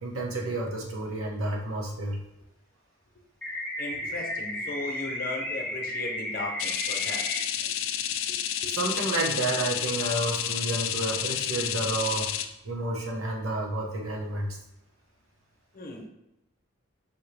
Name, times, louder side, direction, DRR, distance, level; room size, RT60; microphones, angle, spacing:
voice 1, 0.0-2.2 8.7-12.3 12.6-14.6, right 2 dB, 90° right, -1 dB, 1.0 m, -30 dB
sound 1, 3.4-7.4, left 1 dB, 5° left, 0.6 m, -34 dB
voice 2, 3.8-7.3 8.3-8.7 15.7-16.1, left 2 dB, 45° left, 1 dB, 0.8 m, -37 dB
sound 2, 6.6-12.5, left 10 dB, 75° left, 0.4 m, -30 dB
5.4 x 2.9 x 3.2 m, 0.88 s
head